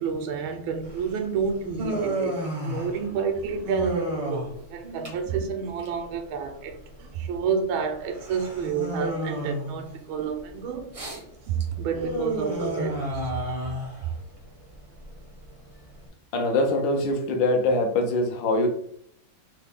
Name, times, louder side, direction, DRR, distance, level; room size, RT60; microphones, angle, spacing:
voice 1, 0.0-6.7 7.0-10.9 11.5-13.3, right 6 dB, 80° right, 1.4 m, -29 dB
Human voice, 0.8-16.1, equal, 35° right, 0.5 m, -33 dB
voice 2, 16.3-18.7, left 2 dB, 70° left, 1.3 m, -23 dB
3.8 x 2.1 x 3.4 m
omnidirectional pair, 2.2 m